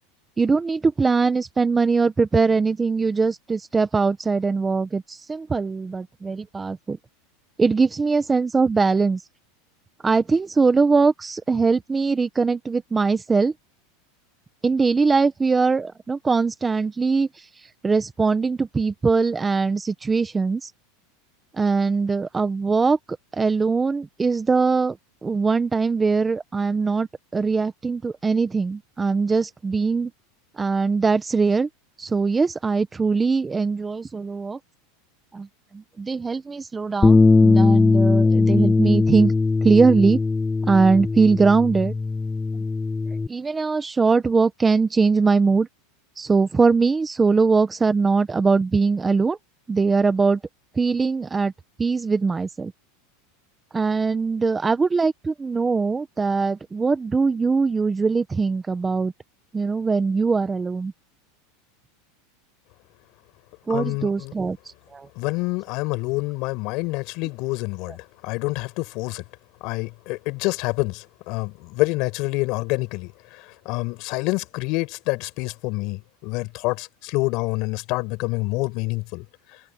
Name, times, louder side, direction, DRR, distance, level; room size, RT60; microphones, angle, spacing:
voice 1, 0.4-7.0 7.6-9.2 10.0-13.5 14.6-20.7 21.5-23.0 23.3-25.0 25.2-30.1 30.6-31.7 32.0-34.6 35.3-35.5 35.7-39.3 39.6-40.2 40.7-41.9 43.3-45.7 46.2-49.4 49.7-50.4 50.7-51.5 51.8-52.7 53.7-59.1 59.5-60.9 63.7-64.6 64.9-65.1, right 4 dB, 15° right, 1.3 m, -21 dB
Bass guitar, 37.0-43.3, left 3 dB, 10° left, 1.4 m, -19 dB
voice 2, 63.7-64.3 65.2-69.2 69.6-79.2, left 24 dB, 55° left, 5.6 m, -27 dB
supercardioid pair, 125°, 0 cm